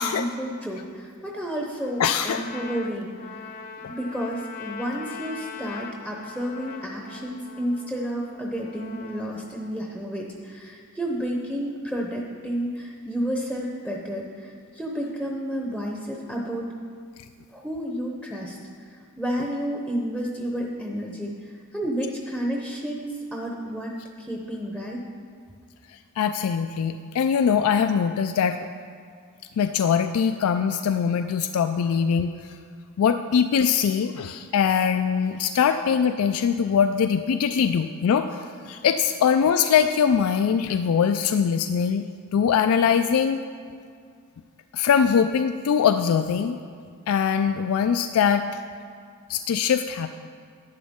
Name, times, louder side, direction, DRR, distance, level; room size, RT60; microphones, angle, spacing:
voice 1, 0.0-3.3 3.9-16.7 17.5-25.0, equal, 5° right, -1 dB, 0.7 m, -31 dB
Trumpet, 1.8-9.9, left 5 dB, 40° left, 0.7 m, -41 dB
voice 2, 2.0-2.4 3.8-3.9 26.2-28.6 29.6-32.6 33.0-42.0 42.3-43.4 44.7-46.6 47.1-48.6 49.3-50.1, left 7 dB, 70° left, 9 dB, 0.3 m, -22 dB
11.0 x 9.5 x 3.6 m, 2.2 s
head